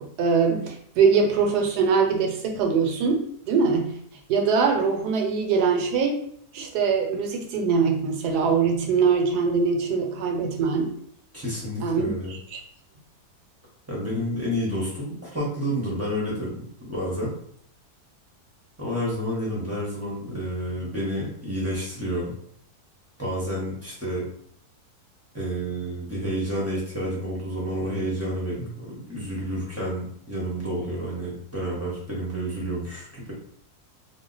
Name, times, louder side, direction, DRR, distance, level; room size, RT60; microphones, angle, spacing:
voice 1, 0.2-3.9 4.3-6.2 6.5-10.9 11.8-12.6, right 5 dB, 85° right, 2 dB, 1.2 m, -22 dB
voice 2, 11.3-12.3 13.9-17.3 18.8-22.3 23.2-24.3 25.3-33.3, equal, 15° right, -6 dB, 0.5 m, -30 dB
2.8 x 2.1 x 3.8 m, 0.65 s
omnidirectional pair, 1.7 m